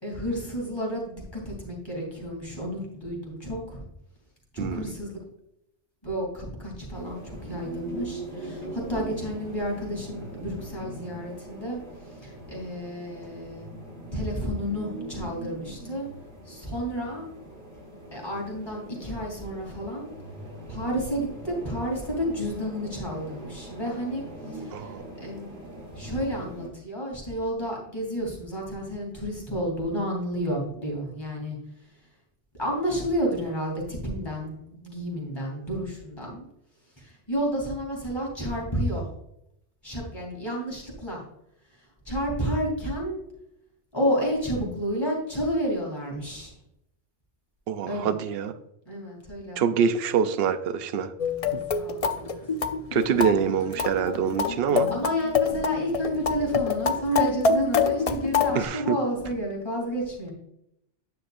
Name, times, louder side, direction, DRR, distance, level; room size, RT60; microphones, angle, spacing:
voice 1, 0.0-3.9 4.5-5.2 6.0-13.7 14.1-16.1 16.4-17.3 18.1-20.1 20.7-24.9 25.2-25.6 25.9-31.6 32.6-36.4 37.0-39.1 39.8-41.2 41.7-43.2 43.9-46.5 47.9-48.2 48.8-49.7 51.4-52.3 53.1-53.3 54.9-60.3, equal, 20° left, -3 dB, 3.2 m, -31 dB
sound 1, 6.9-26.7, right 1 dB, 45° right, 1.8 m, -41 dB
voice 2, 24.7-25.0 47.7-48.6 49.6-51.1 51.5-51.6 52.9-54.9 58.6-59.0, right 7 dB, 60° right, 10 dB, 0.8 m, -25 dB
Barton Springs Marimba, 51.2-58.6, left 6 dB, 45° left, 0.5 m, -26 dB
9.8 x 6.5 x 2.5 m, 0.79 s
omnidirectional pair, 1.2 m